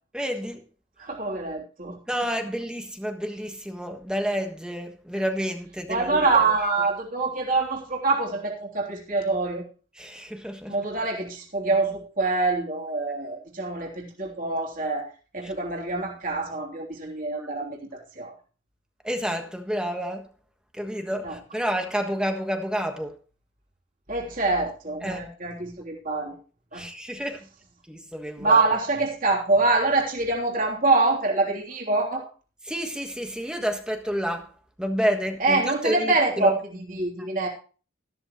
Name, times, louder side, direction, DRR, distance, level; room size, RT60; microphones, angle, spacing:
voice 1, 0.1-0.6 2.1-6.4 10.0-10.8 15.4-15.5 19.0-20.2 20.7-23.1 25.0-25.2 26.7-27.4 27.9-28.6 32.6-34.5 34.8-36.6, equal, 5° right, 1.4 m, -29 dB
voice 2, 1.0-2.0 5.9-9.6 10.7-15.1 15.3-18.3 21.2-21.4 24.1-26.4 26.7-26.9 28.4-32.3 35.4-37.5, right 3 dB, 45° right, 3.3 m, -25 dB
14.0 x 13.5 x 3.1 m
head